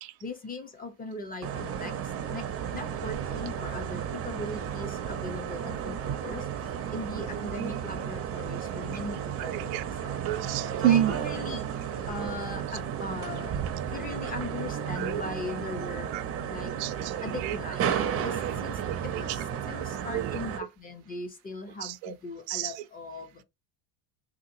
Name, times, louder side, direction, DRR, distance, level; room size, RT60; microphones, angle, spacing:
voice 1, 0.2-2.5 2.7-10.2 10.8-11.6 12.1-13.6 13.9-16.1 16.5-16.7 17.2-17.9 18.2-23.4, left 3 dB, 20° left, 0.5 m, -39 dB
sound 1, 1.4-20.6, right 8 dB, 35° right, 0.5 m, -33 dB
voice 2, 9.4-9.8 10.3-11.1 12.2-12.3 15.0-15.2 16.1-16.2 16.8-17.6 18.3-18.5 18.9-19.0 20.1-20.4 21.8-22.1 22.5-22.7, right 11 dB, 80° right, 0.6 m, -29 dB
3.5 x 2.8 x 2.5 m
cardioid pair, 155°, 44 cm